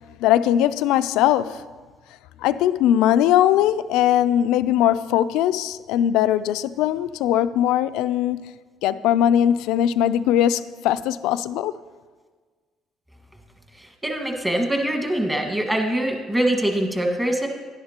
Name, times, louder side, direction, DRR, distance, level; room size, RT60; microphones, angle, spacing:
voice 1, 0.2-1.7 2.4-8.6 8.8-11.7, left 11 dB, 85° left, 0.3 m, -20 dB
voice 2, 13.8-17.5, right 1 dB, 15° right, 1.6 m, -23 dB
11.0 x 11.0 x 2.9 m
cardioid pair, 90°, 0 cm